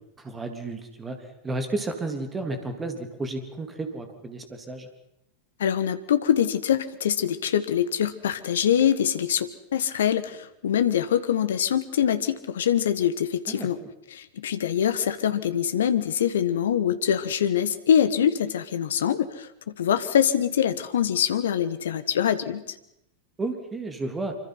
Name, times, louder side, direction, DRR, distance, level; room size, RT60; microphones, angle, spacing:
voice 1, 0.2-1.2 1.4-4.9 13.5-13.9 23.4-24.3, right 2 dB, 15° right, 6 dB, 3.2 m, -32 dB
voice 2, 5.6-13.8 14.1-22.6, left 9 dB, 60° left, 12 dB, 1.5 m, -24 dB
25.5 x 25.0 x 5.9 m, 0.80 s
figure-of-eight pair, 90°, 0 cm